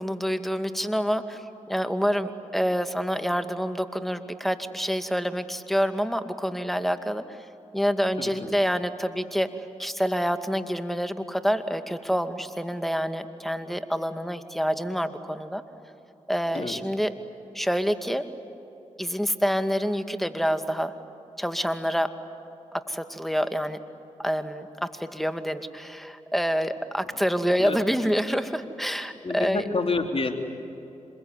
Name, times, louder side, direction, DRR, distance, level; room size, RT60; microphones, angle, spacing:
voice 1, 0.0-7.5 7.7-15.6 16.3-17.1 17.5-18.2 19.0-20.9 21.4-22.1 22.7-23.8 24.2-29.6, equal, ahead, 8 dB, 2.2 m, -27 dB
voice 2, 8.2-8.6 16.5-16.8 27.6-27.8 29.2-30.3, left 3 dB, 45° left, 4 dB, 3.6 m, -28 dB
27.0 x 22.0 x 9.7 m, 2.9 s
supercardioid pair, 40°, 13 cm